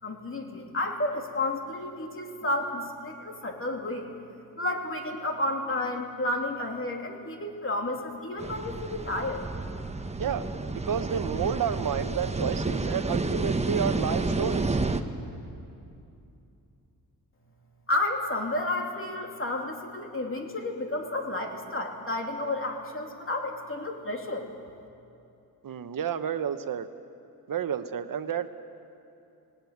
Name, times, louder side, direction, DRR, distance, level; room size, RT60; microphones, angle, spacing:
voice 1, 0.0-4.1 4.6-9.4 17.9-24.5, left 2 dB, 35° left, 2 dB, 2.9 m, -31 dB
sound 1, 8.4-15.0, right 3 dB, 20° right, 1.0 m, -30 dB
voice 2, 10.2-14.8 25.6-26.9 27.5-28.5, right 8 dB, 60° right, 10 dB, 1.0 m, -30 dB
18.5 x 17.5 x 9.4 m, 2.7 s
cardioid pair, 90°, 37 cm